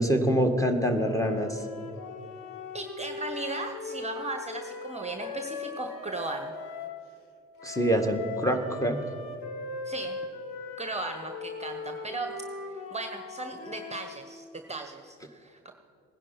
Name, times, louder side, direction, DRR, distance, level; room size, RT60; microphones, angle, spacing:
voice 1, 0.0-1.6 7.6-9.0, equal, 10° left, 5 dB, 1.9 m, -25 dB
sound 1, 0.9-7.0 7.6-14.2, left 4 dB, 70° left, 1.6 m, -39 dB
voice 2, 2.7-6.5 9.8-10.2 10.8-12.4 12.9-15.7, right 3 dB, 20° right, 6 dB, 1.2 m, -37 dB
18.0 x 10.5 x 5.7 m, 2.5 s
hypercardioid pair, 45°, 35 cm